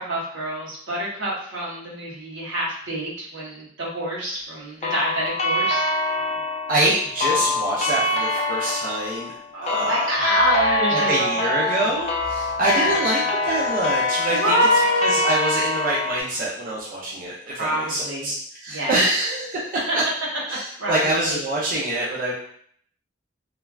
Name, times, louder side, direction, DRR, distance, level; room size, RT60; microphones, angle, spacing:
voice 1, 0.0-5.8 9.5-11.7 12.7-13.0 14.3-15.3 17.5-18.3 18.7-19.0 20.8-21.0 21.3-21.4, equal, 85° right, -5 dB, 1.0 m, -26 dB
sound 1, 4.8-16.2, left 2 dB, 35° left, 0.4 m, -25 dB
voice 2, 6.7-9.3 9.6-10.1 10.9-14.5 15.0-18.3 18.6-20.0 20.5-22.3, right 1 dB, 45° right, -6 dB, 0.5 m, -25 dB
3.2 x 2.2 x 2.3 m, 0.63 s
head